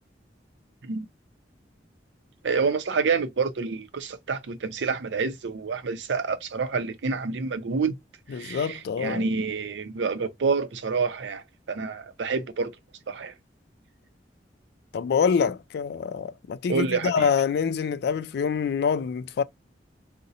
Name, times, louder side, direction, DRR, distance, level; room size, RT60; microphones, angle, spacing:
voice 1, 2.4-8.0 8.3-12.7 13.1-13.3 16.7-17.3, right 4 dB, 85° right, 0.5 m, -28 dB
voice 2, 8.3-9.3 14.9-19.4, left 6 dB, 65° left, 0.3 m, -26 dB
3.7 x 2.1 x 2.7 m
head